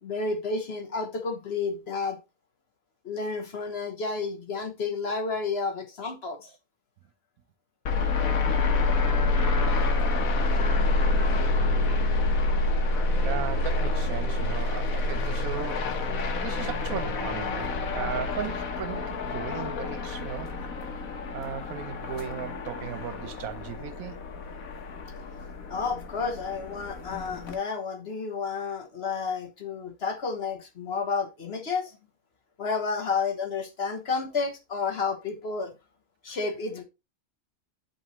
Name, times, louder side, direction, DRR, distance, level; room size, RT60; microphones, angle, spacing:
voice 1, 0.0-2.2 3.0-6.5 25.7-32.0 32.6-35.7 36.2-36.8, left 4 dB, 50° left, 1.2 m, -31 dB
sound 1, 7.9-27.5, left 2 dB, 80° left, 1.5 m, -27 dB
voice 2, 13.2-20.5 21.3-24.2 36.3-36.4, right 9 dB, 85° right, 1.2 m, -37 dB
11.0 x 4.1 x 3.0 m
omnidirectional pair, 1.5 m